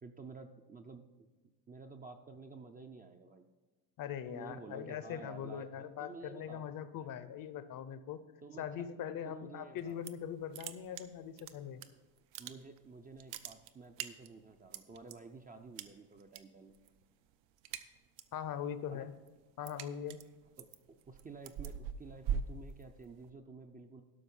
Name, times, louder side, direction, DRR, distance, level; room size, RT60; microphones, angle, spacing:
voice 1, 0.0-1.3 1.7-3.5 4.3-6.6 7.0-7.1 8.4-8.7 9.2-10.0 12.4-16.8 18.9-19.1 20.6-24.0, right 4 dB, 20° right, 6 dB, 0.4 m, -51 dB
voice 2, 4.0-8.2 8.6-11.8 18.3-19.1 19.6-20.2, left 9 dB, 45° left, 13 dB, 0.6 m, -41 dB
sound 1, 9.8-10.3 10.5-11.9 12.2-12.8 13.1-15.1 15.8-16.4 16.7-17.0 17.3-18.4 18.8-23.3, right 8 dB, 75° right, 0.8 m, -42 dB
12.5 x 5.6 x 5.3 m, 1.3 s
cardioid pair, 130°, 46 cm